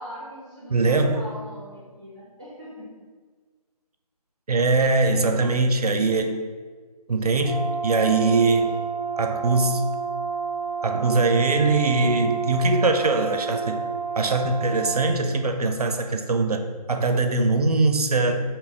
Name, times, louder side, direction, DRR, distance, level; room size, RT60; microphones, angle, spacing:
voice 1, 0.0-3.1 4.8-5.5 8.2-9.3, equal, 10° right, -9 dB, 0.5 m, -42 dB
voice 2, 0.7-1.3 4.5-6.5 7.1-8.8 9.2-9.8 10.8-13.8 14.2-16.6 16.9-18.4, right 3 dB, 70° right, 6 dB, 0.4 m, -22 dB
Brass instrument, 7.4-15.2, right 5 dB, 85° left, 0.7 m, -30 dB
2.8 x 2.6 x 3.5 m, 1.5 s
figure-of-eight pair, 160°, 20 cm